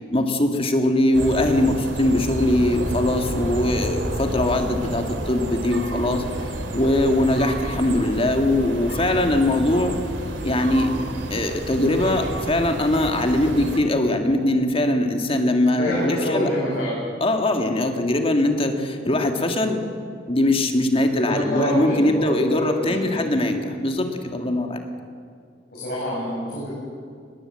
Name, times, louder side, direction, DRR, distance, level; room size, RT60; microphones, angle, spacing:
voice 1, 0.1-6.2 6.7-9.9 10.4-10.9 11.3-16.5 17.2-19.8 20.3-24.8, left 1 dB, 30° left, 5 dB, 2.0 m, -21 dB
sound 1, 1.1-13.8, right 1 dB, 85° right, 2.7 m, -30 dB
voice 2, 15.8-16.9 20.7-23.2 24.5-24.6 25.7-26.7, equal, 55° left, -7 dB, 7.0 m, -27 dB
20.5 x 18.5 x 7.6 m, 2.2 s
head